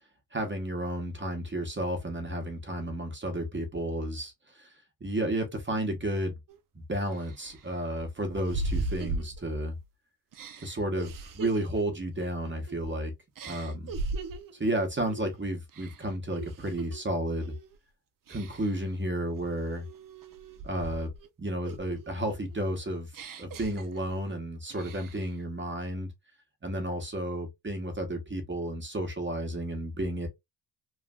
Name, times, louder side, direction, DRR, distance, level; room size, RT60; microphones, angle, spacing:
voice 1, 0.3-4.7 5.0-6.4 6.7-9.8 10.6-13.1 13.4-13.9 14.6-17.5 18.3-19.8 20.6-21.1 21.4-23.1 23.4-26.1 26.6-30.3, right 1 dB, 25° right, 1.1 m, -32 dB
sound 1, 6.5-6.6 7.1-9.8 10.3-13.0 13.4-14.6 15.1-15.4 15.7-17.0 17.4-17.8 18.3-18.9 19.4-21.3 21.7-24.3 24.7-25.3, right 2 dB, 45° right, 0.7 m, -39 dB
3.1 x 2.5 x 2.4 m
cardioid pair, 85°, 47 cm